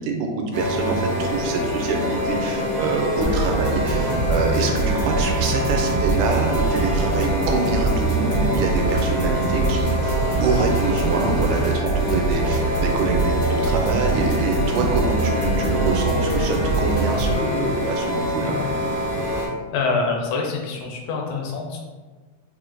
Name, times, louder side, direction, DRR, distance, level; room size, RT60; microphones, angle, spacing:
voice 1, 0.0-18.6, right 4 dB, 80° right, 3 dB, 1.9 m, -26 dB
sound 1, 0.5-19.5, left 1 dB, 65° right, 0.9 m, -25 dB
sound 2, 3.2-17.3, right 4 dB, 65° left, 1.0 m, -24 dB
voice 2, 19.7-21.8, left 4 dB, 80° left, 1 dB, 2.3 m, -25 dB
5.0 x 2.4 x 3.7 m, 1.3 s
omnidirectional pair, 3.8 m